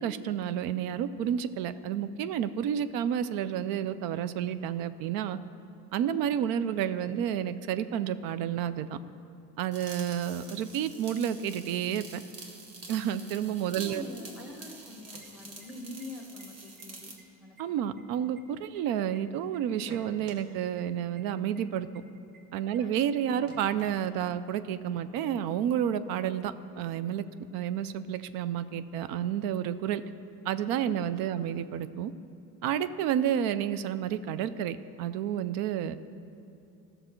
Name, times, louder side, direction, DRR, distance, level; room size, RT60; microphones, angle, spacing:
voice 1, 0.0-5.4 5.9-9.0 9.6-12.2 12.9-14.0 17.6-21.9 22.5-27.2 27.5-30.0 30.4-32.1 32.6-36.0, right 9 dB, 90° right, 14 dB, 0.5 m, -30 dB
sound 1, 9.7-17.2, right 3 dB, 45° right, 1.3 m, -47 dB
voice 2, 13.7-17.1 17.4-17.6 22.7-23.0 31.3-31.5, left 1 dB, ahead, 1 dB, 1.1 m, -44 dB
sound 2, 14.9-16.0 16.4-16.5 16.8-17.2 17.6-19.2 19.5-20.4 20.8-20.9 21.2-21.3 21.5-21.6 21.9-22.0 22.3-22.4 22.7-22.8 23.1-23.2 23.5-24.5, right 3 dB, 75° right, 1.4 m, -51 dB
14.5 x 6.5 x 4.4 m, 2.6 s
cardioid pair, 120°, 34 cm